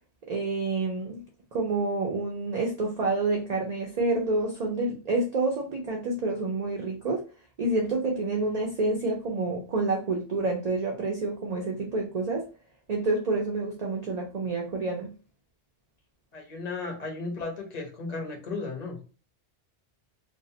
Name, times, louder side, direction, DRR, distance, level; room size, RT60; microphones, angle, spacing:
voice 1, 0.3-1.2 1.5-7.2 7.6-12.5 12.9-15.1, right 3 dB, 55° right, 0 dB, 0.4 m, -28 dB
voice 2, 16.3-19.0, left 3 dB, 45° left, 1 dB, 0.7 m, -35 dB
2.6 x 2.0 x 2.6 m, 0.36 s
omnidirectional pair, 1.1 m